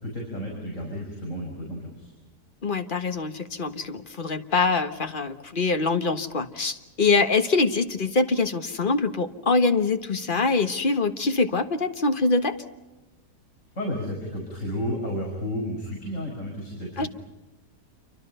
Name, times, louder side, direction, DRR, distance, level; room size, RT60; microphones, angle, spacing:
voice 1, 0.0-2.1 13.8-17.1, equal, 50° left, -2 dB, 6.2 m, -32 dB
voice 2, 2.6-12.5 17.0-17.1, left 3 dB, 35° left, 7 dB, 1.5 m, -24 dB
28.5 x 25.0 x 5.6 m, 1.1 s
omnidirectional pair, 1.7 m